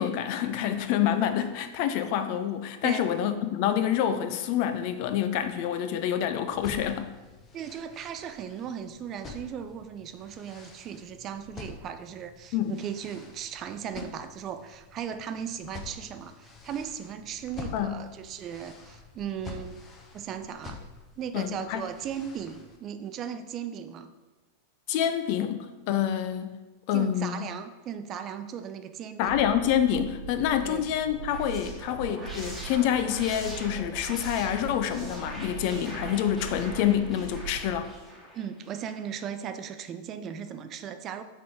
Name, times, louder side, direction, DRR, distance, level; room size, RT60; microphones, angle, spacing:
voice 1, 0.0-7.1 12.5-12.7 17.7-18.0 21.3-21.8 24.9-26.6 26.9-27.5 29.2-37.9, left 10 dB, 45° left, 9 dB, 0.4 m, -27 dB
sound 1, 6.5-22.8, left 4 dB, 25° left, 0.8 m, -47 dB
voice 2, 7.5-19.8 20.1-20.8 21.2-24.1 26.9-29.4 30.6-30.9 38.3-41.2, right 8 dB, 30° right, 9 dB, 0.4 m, -37 dB
sound 2, 29.2-37.9, right 5 dB, 70° right, 1.2 m, -41 dB
sound 3, 31.1-39.1, equal, ahead, 1.6 m, -43 dB
5.7 x 3.6 x 4.8 m, 1.2 s
figure-of-eight pair, 90°, 0 cm